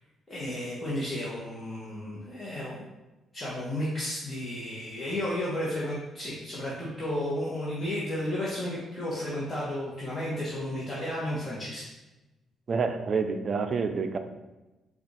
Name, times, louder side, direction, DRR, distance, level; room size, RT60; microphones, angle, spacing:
voice 1, 0.3-2.8 3.3-11.9, left 1 dB, 25° left, -7 dB, 1.1 m, -33 dB
voice 2, 12.7-14.2, right 5 dB, 45° right, 8 dB, 0.4 m, -28 dB
4.4 x 2.4 x 4.0 m, 1.0 s
cardioid pair, 90°, 0 cm